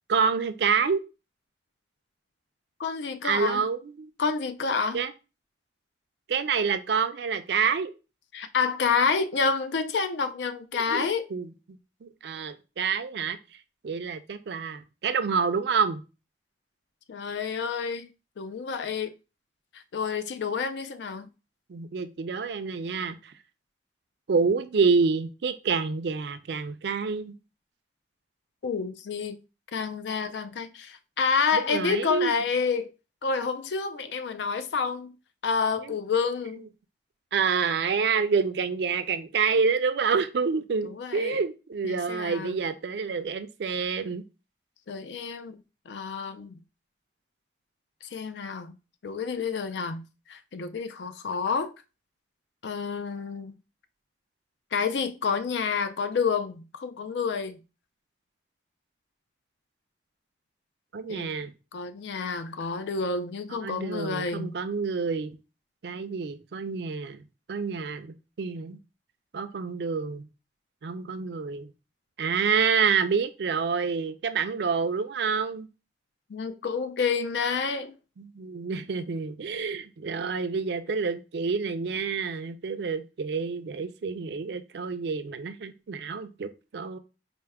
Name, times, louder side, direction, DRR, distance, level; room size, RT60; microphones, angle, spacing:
voice 1, 0.1-1.0 3.2-4.1 4.9-5.1 6.3-7.9 10.7-13.4 13.8-16.0 21.7-23.3 24.3-27.3 31.5-32.3 35.8-36.0 37.3-44.2 60.9-61.5 63.5-65.4 65.8-68.8 69.3-70.3 70.8-71.7 72.2-75.7 78.2-87.0, right 5 dB, 65° right, 0.4 m, -28 dB
voice 2, 2.8-3.6 4.2-5.0 8.3-11.3 17.1-18.1 18.4-19.1 19.7-21.3 28.6-29.4 29.7-32.9 33.2-35.2 35.4-36.7 40.8-41.4 41.8-42.6 44.9-46.6 48.0-48.7 49.0-51.7 52.6-53.5 54.7-57.6 61.1-61.3 61.7-64.5 76.3-78.0, left 5 dB, 75° left, 0.4 m, -29 dB
4.4 x 2.1 x 3.4 m
head